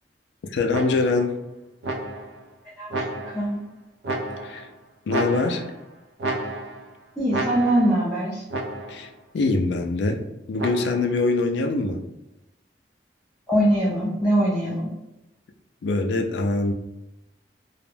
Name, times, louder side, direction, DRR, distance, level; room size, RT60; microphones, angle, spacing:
voice 1, 0.5-1.3 4.4-4.7 5.1-5.6 8.9-9.1 9.3-10.2 10.5-12.0 15.8-16.7, left 3 dB, 75° left, 4 dB, 0.3 m, -23 dB
sound 1, 0.7-1.3 1.8-2.4 2.9-3.6 4.0-4.7 5.1-5.8 6.2-6.9 7.3-8.0 8.5-9.1 10.6-11.2, right 2 dB, 65° right, 0.4 m, -31 dB
voice 2, 7.2-8.4 13.5-14.9, right 1 dB, 5° left, -9 dB, 0.5 m, -22 dB
2.3 x 2.1 x 3.2 m, 0.93 s
head